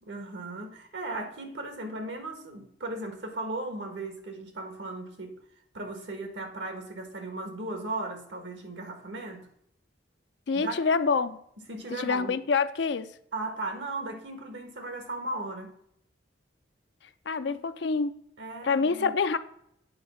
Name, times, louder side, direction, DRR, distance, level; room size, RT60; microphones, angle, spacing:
voice 1, 0.0-5.4 5.7-9.5 10.5-10.8 11.7-12.4 13.3-15.7 18.4-19.1, right 2 dB, 70° right, 1.5 m, -36 dB
voice 2, 10.5-11.4 12.0-13.1 17.3-18.2 18.6-19.4, left 5 dB, 65° left, 0.5 m, -26 dB
8.8 x 4.0 x 5.6 m
head